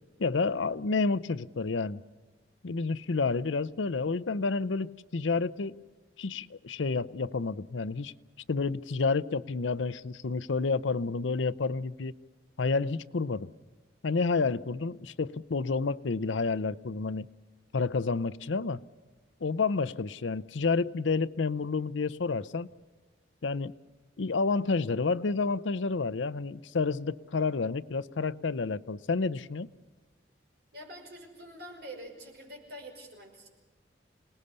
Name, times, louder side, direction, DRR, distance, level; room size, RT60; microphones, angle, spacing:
voice 1, 0.2-2.0 2.6-5.8 6.2-8.1 8.5-12.1 12.6-13.5 14.0-17.3 17.7-18.8 19.4-22.7 23.4-23.7 24.2-29.7, left 4 dB, 85° left, 16 dB, 0.6 m, -29 dB
voice 2, 30.7-33.5, right 1 dB, 55° right, 1 dB, 5.6 m, -46 dB
28.0 x 19.0 x 6.8 m, 1.3 s
head